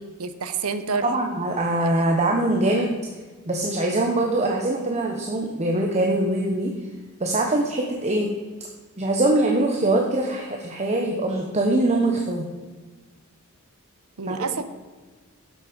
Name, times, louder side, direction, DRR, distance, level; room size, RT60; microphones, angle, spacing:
voice 1, 0.0-1.1 1.8-2.1 14.2-14.6, right 5 dB, 75° right, 11 dB, 0.9 m, -29 dB
voice 2, 1.0-3.0 3.5-6.7 7.2-8.3 9.0-12.5 14.3-14.5, right 2 dB, 30° right, 1 dB, 1.1 m, -23 dB
11.5 x 7.5 x 5.2 m, 1.4 s
head